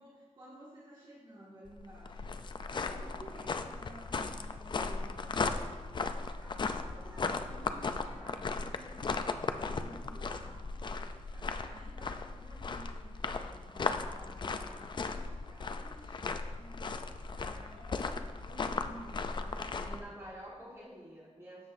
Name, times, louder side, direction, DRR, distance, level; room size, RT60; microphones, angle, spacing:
voice 1, 0.0-2.5 2.9-5.3 6.4-18.1 18.4-20.1, right 1 dB, 40° right, -8 dB, 1.8 m, -53 dB
sound 1, 1.7-20.0, left 4 dB, 40° left, 0.4 m, -37 dB
voice 2, 19.8-21.7, equal, 20° right, -7 dB, 2.4 m, -49 dB
12.5 x 7.8 x 2.6 m, 1.4 s
wide cardioid pair, 175°, 12 cm